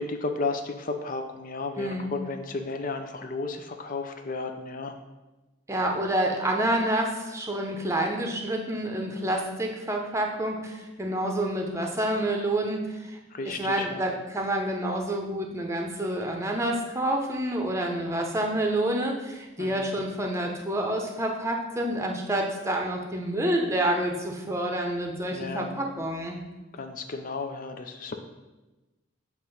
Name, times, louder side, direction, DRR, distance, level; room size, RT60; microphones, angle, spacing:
voice 1, 0.0-4.9 13.3-14.0 19.6-19.9 25.3-25.7 26.8-28.2, left 3 dB, 45° left, 6 dB, 0.5 m, -33 dB
voice 2, 1.8-2.1 5.7-13.2 13.4-26.4, right 1 dB, 15° right, 2 dB, 0.8 m, -28 dB
7.6 x 3.0 x 5.4 m, 1.1 s
head